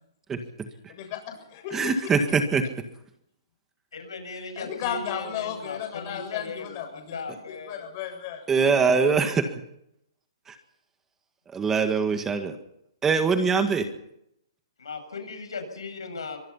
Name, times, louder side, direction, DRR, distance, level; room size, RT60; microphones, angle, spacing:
voice 1, 0.9-1.9 4.6-8.4, left 9 dB, 35° left, 4 dB, 7.7 m, -34 dB
voice 2, 1.7-2.6 8.5-9.5 11.5-12.5 13.0-13.9, right 5 dB, 15° right, 7 dB, 1.8 m, -22 dB
voice 3, 3.9-7.9 14.8-16.4, left 4 dB, 85° left, 6 dB, 7.4 m, -38 dB
24.5 x 20.5 x 5.7 m, 0.78 s
hypercardioid pair, 150°, 3 cm